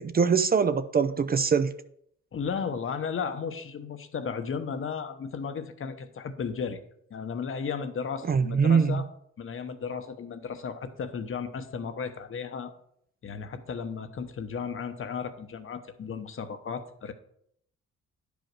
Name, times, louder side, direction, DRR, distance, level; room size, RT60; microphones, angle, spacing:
voice 1, 0.0-1.7 8.3-9.0, right 6 dB, 30° right, 11 dB, 0.5 m, -23 dB
voice 2, 2.3-6.8 7.1-9.1 9.4-12.7 13.2-17.1, left 6 dB, 45° left, 9 dB, 0.9 m, -34 dB
10.0 x 5.1 x 4.7 m, 0.70 s
cardioid pair, 90°, 30 cm